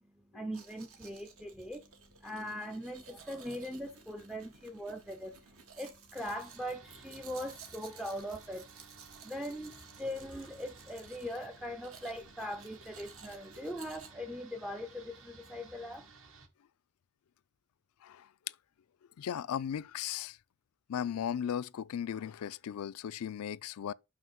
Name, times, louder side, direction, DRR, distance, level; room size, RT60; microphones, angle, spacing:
voice 1, 0.0-16.1, equal, ahead, 0.3 m, -41 dB
Domestic sounds home sounds, 0.5-14.1, right 5 dB, 80° right, 1.4 m, -55 dB
sound 1, 6.1-16.5, right 4 dB, 65° right, 1.2 m, -56 dB
voice 2, 19.2-20.4 20.9-23.9, left 9 dB, 85° left, 0.4 m, -36 dB
6.0 x 5.7 x 4.6 m
head